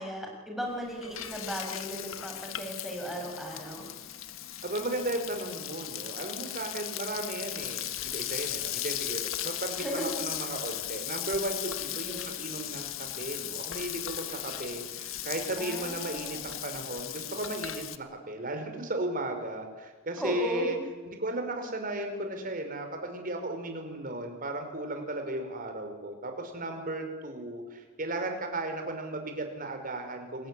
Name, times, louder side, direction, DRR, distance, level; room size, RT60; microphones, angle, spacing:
voice 1, 0.0-3.9 9.8-10.2 12.0-12.3 15.6-16.4 20.2-20.8, right 1 dB, ahead, 0 dB, 7.0 m, -35 dB
Frying (food), 0.7-18.0, left 12 dB, 75° left, 1.5 m, -37 dB
voice 2, 4.6-12.9 13.2-20.8 21.1-30.5, right 1 dB, 40° right, 5 dB, 5.3 m, -35 dB
27.5 x 21.0 x 9.9 m, 1.3 s
head